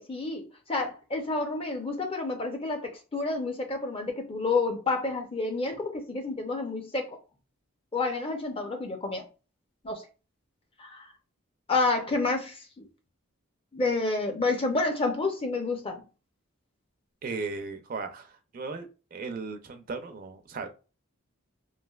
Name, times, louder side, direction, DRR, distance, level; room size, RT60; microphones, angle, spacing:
voice 1, 0.0-7.1 7.9-9.2 9.8-10.0 10.8-11.1 11.7-12.9 13.7-16.0, left 3 dB, 25° left, 0.5 m, -29 dB
voice 2, 17.2-20.7, right 4 dB, 40° right, 0.4 m, -36 dB
3.2 x 2.6 x 2.3 m
head